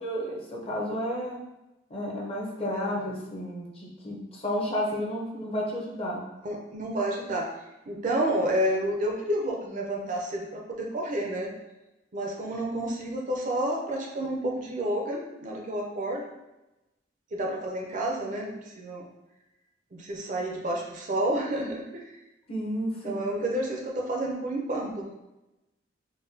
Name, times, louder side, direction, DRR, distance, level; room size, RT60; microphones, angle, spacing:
voice 1, 0.0-1.4 1.9-6.2 22.5-23.5, equal, 35° left, -3 dB, 0.7 m, -32 dB
voice 2, 6.4-7.5 7.9-11.5 12.1-16.3 17.3-19.0 19.9-22.1 23.0-25.1, right 1 dB, 45° right, 0 dB, 0.5 m, -30 dB
3.9 x 2.2 x 2.6 m, 0.96 s
head